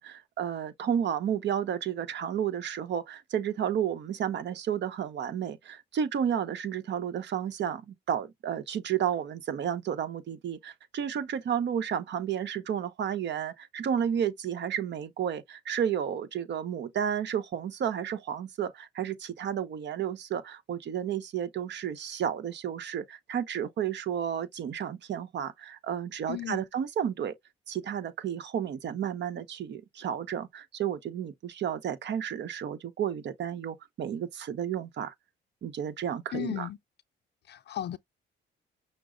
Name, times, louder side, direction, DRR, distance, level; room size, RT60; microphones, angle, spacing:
voice 1, 0.0-27.3 27.7-35.1 35.6-36.7, right 9 dB, 65° right, 0.9 m, -32 dB
voice 2, 26.3-26.6 36.3-36.8 37.4-38.0, left 13 dB, 60° left, 0.4 m, -35 dB
6.0 x 2.1 x 3.8 m
cardioid pair, 90°, 20 cm